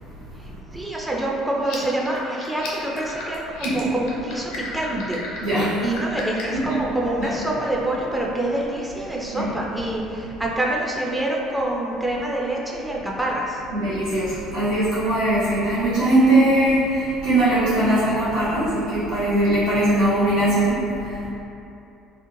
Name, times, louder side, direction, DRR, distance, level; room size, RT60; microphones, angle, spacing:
voice 1, 0.7-3.4 3.7-5.2 5.8-13.6, right 1 dB, 10° right, -3 dB, 0.4 m, -26 dB
sound 1, 1.6-6.6, left 3 dB, 60° left, 0.5 m, -35 dB
voice 2, 5.4-5.8 6.5-6.6 7.2-7.3 9.3-9.5 13.7-21.3, right 1 dB, 80° right, -15 dB, 0.7 m, -20 dB
2.4 x 2.1 x 3.0 m, 2.8 s
figure-of-eight pair, 55°, 0 cm